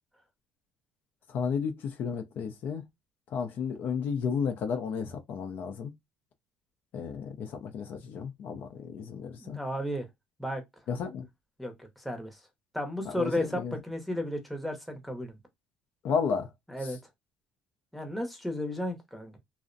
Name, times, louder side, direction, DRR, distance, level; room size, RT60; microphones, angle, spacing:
voice 1, 1.3-2.8 3.3-5.9 6.9-9.6 10.9-11.3 13.1-13.7 16.0-16.5, left 6 dB, 55° left, 0.4 m, -32 dB
voice 2, 9.4-10.1 10.4-10.6 11.6-12.4 12.7-15.4 16.7-17.0 17.9-19.4, left 1 dB, ahead, 0.7 m, -34 dB
2.4 x 2.0 x 2.5 m
cardioid pair, 115°, 4 cm